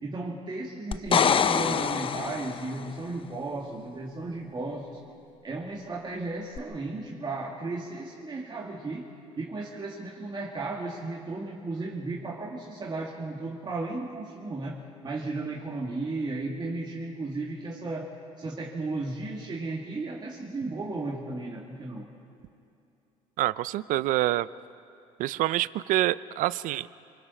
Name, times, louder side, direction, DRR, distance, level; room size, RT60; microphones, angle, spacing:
voice 1, 0.0-5.0 5.4-9.1 9.4-14.8 15.0-18.1 18.4-22.1, right 2 dB, 30° right, -3 dB, 2.5 m, -34 dB
sound 1, 0.9-2.8 6.6-6.7, left 7 dB, 40° left, 0.7 m, -25 dB
voice 2, 23.4-24.5 25.2-26.9, right 15 dB, 70° right, 18 dB, 0.5 m, -26 dB
26.0 x 24.5 x 4.4 m, 2.6 s
supercardioid pair, 75°, 14 cm